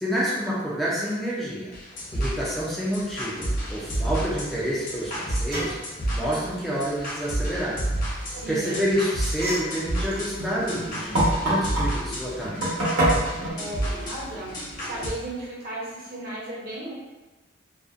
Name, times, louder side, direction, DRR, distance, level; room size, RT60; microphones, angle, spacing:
voice 1, 0.0-1.7 2.1-5.7 6.1-7.8 8.2-12.7, equal, ahead, -8 dB, 0.4 m, -28 dB
sound 1, 1.7-15.1, right 1 dB, 45° left, 0.7 m, -31 dB
sound 2, 5.1-5.2 5.5-5.8 8.2-8.7 9.3-11.9 12.4-13.5, right 1 dB, 80° right, 0.9 m, -26 dB
voice 2, 8.2-8.8 13.5-14.5 14.8-16.9, right 1 dB, 50° right, -5 dB, 0.7 m, -35 dB
2.5 x 2.0 x 2.4 m, 1.1 s
head